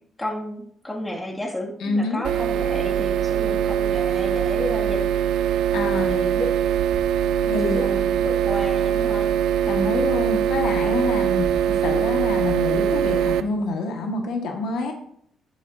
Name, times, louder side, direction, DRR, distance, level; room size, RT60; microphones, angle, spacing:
voice 1, 0.2-5.1 6.0-6.6 7.4-9.3, left 1 dB, 15° left, -2 dB, 2.4 m, -32 dB
voice 2, 1.8-2.2 3.5-3.7 5.7-6.1 7.5-8.0 9.6-14.9, left 3 dB, 80° left, 2 dB, 1.7 m, -27 dB
sound 1, 2.2-13.4, right 9 dB, 85° right, 0.6 m, -22 dB
11.0 x 8.8 x 2.8 m, 0.64 s
cardioid pair, 90°, 0 cm